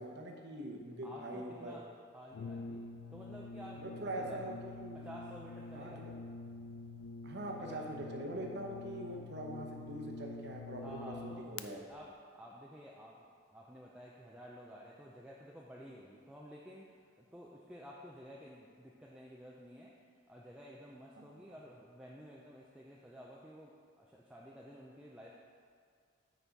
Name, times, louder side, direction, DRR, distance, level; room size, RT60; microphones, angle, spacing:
voice 1, 0.0-1.8 3.8-5.0 5.7-6.1 7.2-11.8 21.2-21.3, right 1 dB, 50° right, 1 dB, 0.9 m, -43 dB
voice 2, 1.0-1.9 2.1-4.5 4.9-6.1 7.4-7.8 10.8-11.6 11.9-19.9 20.3-25.3, equal, 5° right, -4 dB, 0.4 m, -52 dB
Brass instrument, 2.3-11.7, left 3 dB, 70° left, 0.4 m, -47 dB
9.0 x 4.2 x 4.6 m, 2.1 s
head